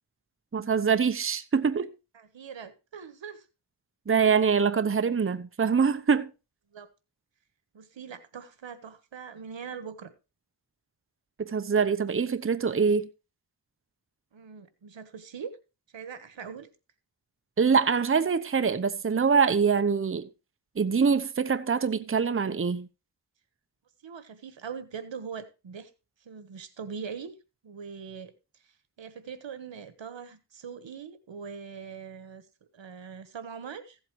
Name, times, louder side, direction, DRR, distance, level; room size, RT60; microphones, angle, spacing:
voice 1, 0.5-1.9 4.1-6.3 11.4-13.1 17.6-20.3 20.8-22.9, right 6 dB, 30° right, 0.8 m, -24 dB
voice 2, 2.1-3.5 6.7-6.9 7.7-10.1 14.3-15.6 15.9-16.7 24.0-25.9 26.2-27.4 27.6-32.4 32.7-34.0, right 6 dB, 85° right, 1.4 m, -42 dB
15.5 x 8.1 x 3.1 m
wide cardioid pair, 70°, 44 cm